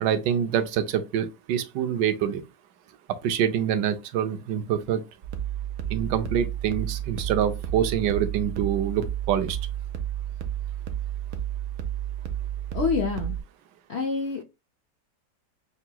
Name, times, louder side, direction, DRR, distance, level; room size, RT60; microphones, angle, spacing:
voice 1, 0.0-2.4 3.2-5.0 5.9-9.6, right 9 dB, 80° right, 1.3 m, -26 dB
sound 1, 5.2-13.4, right 11 dB, 60° right, 0.9 m, -31 dB
voice 2, 12.7-13.4 13.9-14.4, left 5 dB, 65° left, 0.6 m, -27 dB
5.8 x 2.8 x 2.2 m
omnidirectional pair, 1.9 m